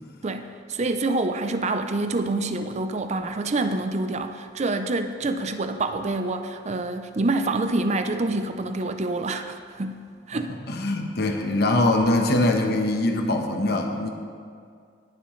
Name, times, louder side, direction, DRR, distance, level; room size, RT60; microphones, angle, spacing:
voice 1, 0.2-10.0 10.3-10.5, right 2 dB, 35° right, 8 dB, 0.5 m, -27 dB
voice 2, 10.3-14.1, left 2 dB, 55° left, 3 dB, 1.0 m, -23 dB
19.0 x 7.6 x 3.2 m, 2.2 s
head